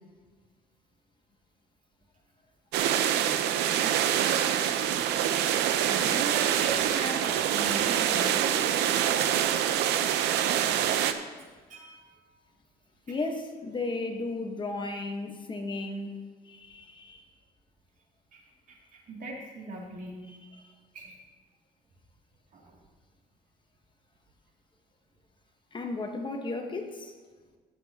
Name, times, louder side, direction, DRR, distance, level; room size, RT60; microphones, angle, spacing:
Sailing boat bow wave (distant perspective), 2.7-11.1, right 10 dB, 85° right, 0.7 m, -25 dB
voice 1, 5.8-8.6 10.7-11.1 11.4-12.3 13.1-13.2 18.3-20.2 20.9-21.2 22.5-22.8, right 2 dB, 50° right, -1 dB, 2.5 m, -39 dB
voice 2, 13.1-17.2 20.3-20.7 25.7-27.1, left 3 dB, 30° left, 4 dB, 1.1 m, -35 dB
17.0 x 7.7 x 2.8 m, 1.4 s
cardioid pair, 110°, 17 cm